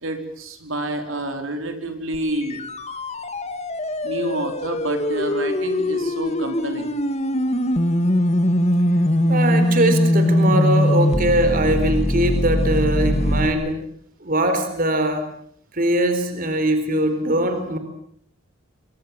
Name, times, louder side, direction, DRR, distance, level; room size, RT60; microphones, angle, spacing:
voice 1, 0.0-2.6 4.0-6.9, right 1 dB, 75° right, 5 dB, 4.6 m, -28 dB
sound 1, 2.1-13.5, left 1 dB, 30° left, 2.0 m, -21 dB
voice 2, 9.3-13.8 14.2-15.2 15.7-17.8, right 1 dB, 45° right, 8 dB, 4.2 m, -21 dB
27.5 x 25.5 x 7.5 m, 0.64 s
head